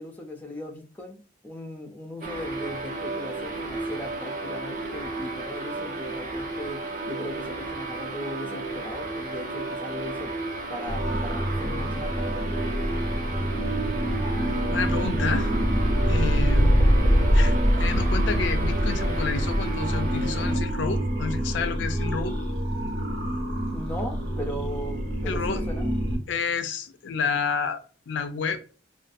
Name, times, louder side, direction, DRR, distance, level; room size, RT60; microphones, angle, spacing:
voice 1, 0.0-10.3 10.7-12.5 23.7-25.9, left 1 dB, 10° left, 0.4 m, -38 dB
sound 1, 2.2-20.6, right 2 dB, 45° right, 0.5 m, -33 dB
sound 2, 10.9-26.2, equal, 90° right, 1.0 m, -25 dB
voice 2, 14.7-15.5 16.1-16.8 17.3-22.4 25.3-25.6 26.3-27.8 28.1-28.6, left 5 dB, 80° left, 0.4 m, -30 dB
2.5 x 2.3 x 2.4 m
head